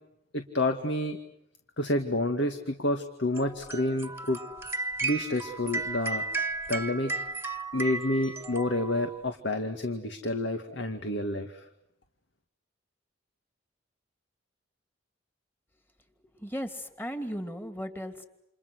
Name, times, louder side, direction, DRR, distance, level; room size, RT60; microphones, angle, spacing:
voice 1, 0.3-1.2 1.8-4.4 5.0-6.2 6.7-7.1 7.7-11.7, left 1 dB, 70° left, 6 dB, 2.2 m, -29 dB
sound 1, 3.3-9.2, right 3 dB, 15° right, 1.6 m, -34 dB
voice 2, 16.3-18.3, equal, 10° left, 7 dB, 2.8 m, -36 dB
30.0 x 28.5 x 6.4 m, 0.81 s
head